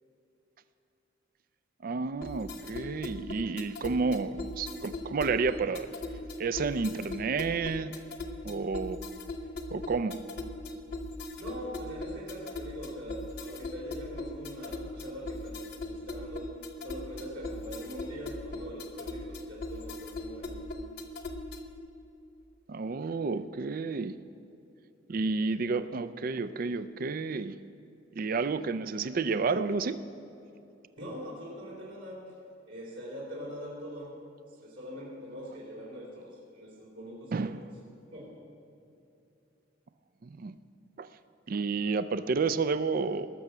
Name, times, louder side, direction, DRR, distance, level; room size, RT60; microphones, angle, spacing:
voice 1, 1.8-5.9 6.4-7.9 8.4-9.0 9.7-10.2 22.7-24.2 25.1-27.5 28.2-30.0 37.3-37.6 40.2-40.5 41.0-41.1 41.5-43.3, right 4 dB, 50° right, 13 dB, 0.4 m, -30 dB
sound 1, 2.2-21.8, left 2 dB, 55° left, 1.0 m, -39 dB
voice 2, 11.4-16.5 16.8-20.6 31.0-32.3 32.7-34.2 34.6-37.7 38.1-38.3, equal, 70° right, -6 dB, 3.5 m, -43 dB
19.5 x 6.7 x 6.0 m, 2.8 s
head